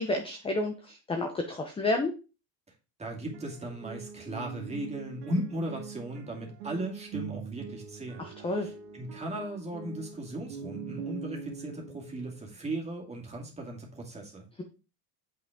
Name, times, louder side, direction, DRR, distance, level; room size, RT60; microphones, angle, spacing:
voice 1, 0.0-2.1 8.2-8.7, left 2 dB, 10° left, 0.8 m, -30 dB
voice 2, 3.0-8.3 8.6-14.5, right 1 dB, 15° right, 2.2 m, -37 dB
sound 1, 3.2-12.6, right 6 dB, 85° right, 2.1 m, -43 dB
7.7 x 5.5 x 3.7 m
cardioid pair, 145°, 46 cm